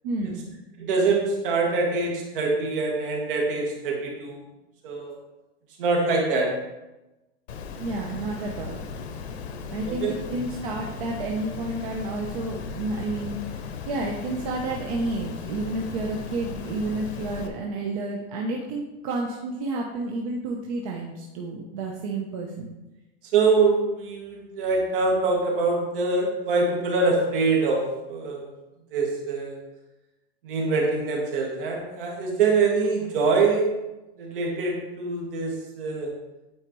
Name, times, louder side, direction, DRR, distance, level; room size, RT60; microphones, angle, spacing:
voice 1, 0.0-0.5 7.8-8.8 9.7-22.7, right 2 dB, 35° right, 0 dB, 0.7 m, -30 dB
voice 2, 0.8-4.4 4.8-5.1 5.8-6.5 9.9-10.1 23.3-27.8 28.1-28.5 28.9-29.5 30.4-33.7 34.2-36.1, right 4 dB, 55° right, -1 dB, 2.1 m, -24 dB
Water, 7.5-17.5, left 5 dB, 80° left, 1.0 m, -37 dB
9.1 x 4.8 x 3.1 m, 1.0 s
supercardioid pair, 170°, 32 cm